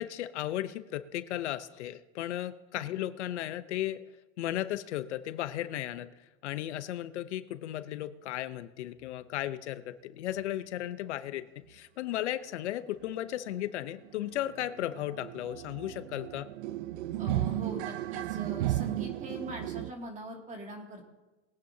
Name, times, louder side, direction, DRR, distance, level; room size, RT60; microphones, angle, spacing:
voice 1, 0.0-4.0 4.4-6.1 6.4-16.5, left 13 dB, 90° left, 12 dB, 0.9 m, -35 dB
sound 1, 13.0-13.1 13.5-13.6 13.9-19.9, right 14 dB, 80° right, 0.7 m, -35 dB
voice 2, 17.2-21.1, equal, 20° right, 2 dB, 2.4 m, -42 dB
21.5 x 9.4 x 2.8 m, 1.1 s
supercardioid pair, 135°, 33 cm